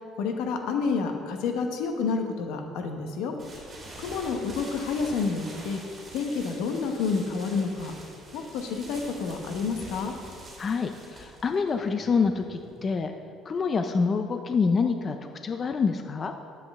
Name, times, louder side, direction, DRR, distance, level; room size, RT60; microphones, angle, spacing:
voice 1, 0.2-3.3 4.0-5.8 6.1-7.9 8.3-10.1, left 5 dB, 80° left, 4 dB, 1.0 m, -29 dB
sound 1, 3.4-13.0, right 1 dB, 25° right, 2.4 m, -45 dB
voice 2, 10.6-13.1 13.5-15.2 15.4-16.3, left 5 dB, 30° left, 6 dB, 0.4 m, -26 dB
10.0 x 7.7 x 3.5 m, 2.3 s
cardioid pair, 155°, 0 cm